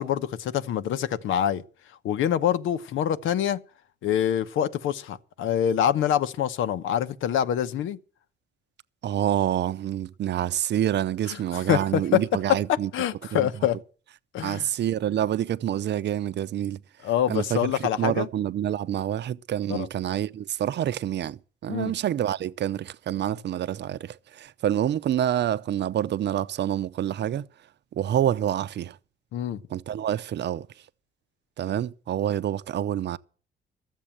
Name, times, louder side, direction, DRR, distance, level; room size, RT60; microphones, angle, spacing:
voice 1, 0.0-1.6 2.0-3.6 4.0-8.0 11.5-12.2 12.7-13.8 14.3-14.7 17.0-18.3 19.7-19.9 21.7-21.9 29.3-29.6, left 10 dB, 80° left, 0.9 m, -25 dB
voice 2, 9.0-12.9 13.3-13.5 14.4-16.8 17.3-27.5 27.9-29.0 29.7-30.7 31.6-33.2, right 11 dB, 60° right, 0.7 m, -27 dB
13.5 x 7.5 x 8.7 m
cardioid pair, 90°, 20 cm